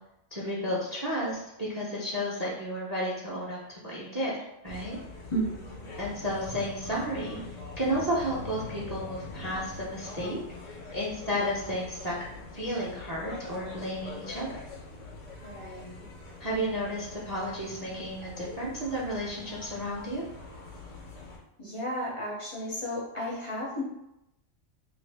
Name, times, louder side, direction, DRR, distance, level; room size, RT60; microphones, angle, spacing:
voice 1, 0.3-5.0 6.0-7.4 7.8-12.2 12.5-14.6 16.4-20.2, equal, 25° right, -6 dB, 0.5 m, -32 dB
sound 1, 4.6-21.4, left 3 dB, 75° left, 1.1 m, -44 dB
voice 2, 5.3-5.9 15.4-16.0 21.6-23.8, right 1 dB, 35° left, -5 dB, 0.6 m, -34 dB
2.9 x 2.5 x 3.3 m, 0.88 s
omnidirectional pair, 1.3 m